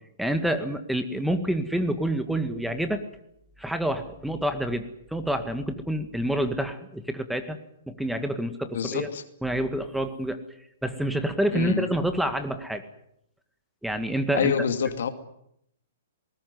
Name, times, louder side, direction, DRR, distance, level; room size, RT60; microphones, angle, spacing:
voice 1, 0.2-3.0 3.6-7.6 7.9-9.1 9.4-10.4 10.8-12.8 13.8-14.5, right 1 dB, ahead, 9 dB, 1.9 m, -27 dB
voice 2, 8.7-9.2 11.5-11.9 14.3-15.1, left 7 dB, 70° left, 9 dB, 2.5 m, -26 dB
20.5 x 19.0 x 9.6 m, 0.74 s
hypercardioid pair, 125°, 0 cm